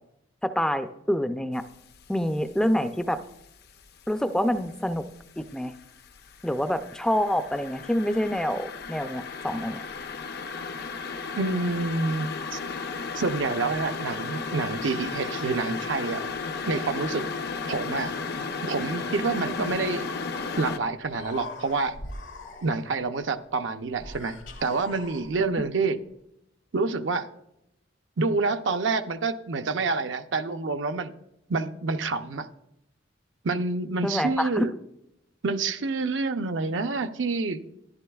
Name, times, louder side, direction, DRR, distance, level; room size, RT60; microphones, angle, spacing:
voice 1, 0.4-1.6 2.1-3.2 4.1-5.1 5.4-5.7 6.4-9.8 19.6-19.7 25.6-25.7 34.0-34.7, equal, 5° left, 9 dB, 0.3 m, -27 dB
sound 1, 1.7-2.1 2.5-4.1 4.4-20.8, left 4 dB, 55° left, 0.6 m, -34 dB
voice 2, 11.4-12.6 13.1-16.2 16.7-17.3 17.7-18.1 18.6-20.0 20.6-21.9 22.6-26.0 26.7-27.3 28.2-31.1 31.5-32.5 33.4-34.7 35.4-37.6, right 3 dB, 75° right, 8 dB, 0.6 m, -27 dB
Human voice, 21.0-23.0 23.9-25.6, left 2 dB, 80° left, 1.8 m, -42 dB
13.5 x 11.0 x 2.3 m, 0.81 s
head